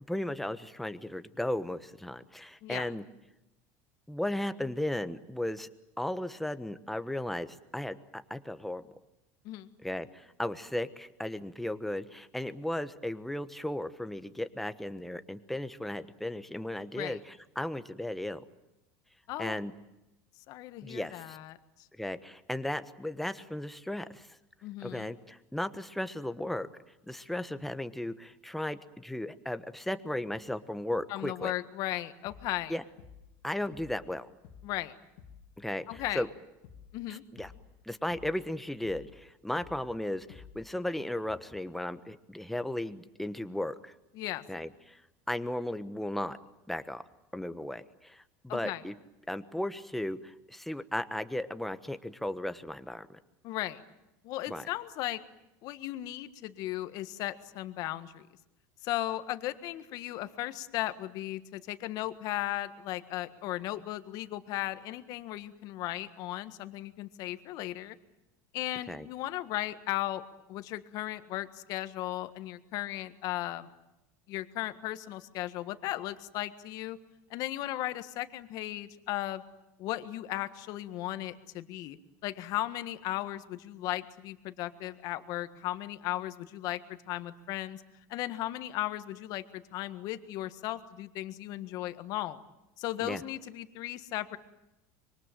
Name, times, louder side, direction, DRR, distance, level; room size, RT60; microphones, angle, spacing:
voice 1, 0.1-3.0 4.1-5.7 6.0-8.8 9.8-18.4 19.4-19.7 20.8-21.4 22.0-24.4 24.8-26.7 27.1-31.5 32.7-32.8 33.4-34.3 35.6-36.3 37.1-37.5 37.8-43.9 44.5-45.0 45.3-46.4 46.7-47.0 47.3-48.9 49.3-53.2 54.5-54.7 68.9-69.1 93.0-93.2, left 1 dB, 5° left, 10 dB, 1.2 m, -35 dB
voice 2, 20.5-21.6 24.6-25.1 31.1-32.8 34.6-34.9 35.9-36.2 36.9-37.2 44.1-44.4 48.5-48.8 53.4-53.8 54.2-55.2 55.6-58.2 58.8-68.0 68.5-70.2 70.5-73.7 74.3-77.0 77.3-79.4 79.8-82.0 82.2-86.8 87.1-87.8 88.1-92.4 92.8-94.4, left 15 dB, 55° left, 11 dB, 1.6 m, -36 dB
sound 1, 32.2-32.6 33.0-33.4 33.7-34.1 34.4-34.8 35.2-35.5 35.9-36.3 36.6-37.0 37.4-37.7 38.1-38.5 38.8-39.2 39.6-39.9 40.3-40.7, left 7 dB, 75° left, 2.4 m, -52 dB
25.5 x 23.5 x 9.1 m, 0.91 s
supercardioid pair, 135°, 7 cm